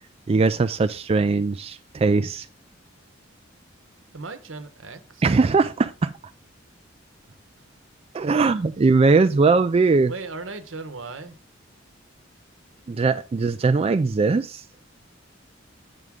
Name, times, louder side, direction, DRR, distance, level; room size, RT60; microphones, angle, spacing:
voice 1, 0.3-2.5 5.2-6.1 8.1-10.1 12.9-14.6, right 4 dB, 30° right, 0.3 m, -20 dB
voice 2, 4.1-5.2 10.1-11.4, right 3 dB, 80° right, 1.0 m, -36 dB
8.0 x 6.1 x 3.6 m
head